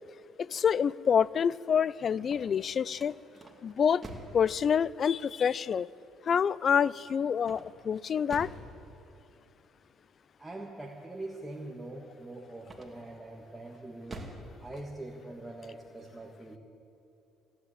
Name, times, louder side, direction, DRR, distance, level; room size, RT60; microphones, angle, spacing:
voice 1, 0.4-3.1 3.6-4.0 4.3-5.9 6.3-8.5, left 7 dB, 50° left, 22 dB, 0.3 m, -27 dB
sound 1, 2.1-4.5 7.4-8.7 12.6-13.2 13.7-14.5, right 2 dB, 25° right, 2.7 m, -46 dB
voice 2, 10.4-14.2 14.6-16.6, right 2 dB, 10° right, -1 dB, 1.6 m, -43 dB
16.5 x 10.5 x 8.6 m, 2.9 s
supercardioid pair, 85°, 0 cm